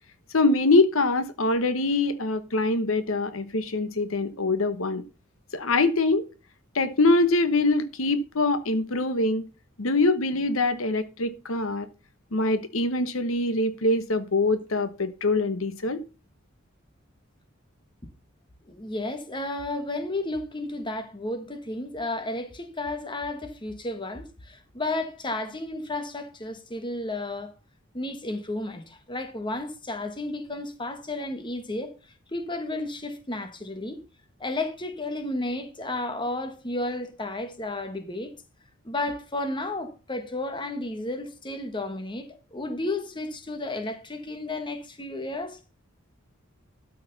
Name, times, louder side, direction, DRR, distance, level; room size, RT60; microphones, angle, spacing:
voice 1, 0.3-5.0 5.5-6.2 6.7-9.4 9.8-11.9 12.3-16.0, left 2 dB, 80° left, 1.1 m, -24 dB
voice 2, 18.6-27.5 27.9-32.0 32.3-34.0 34.4-38.3 38.8-45.6, left 2 dB, 25° left, 1.3 m, -32 dB
12.5 x 6.5 x 4.0 m
head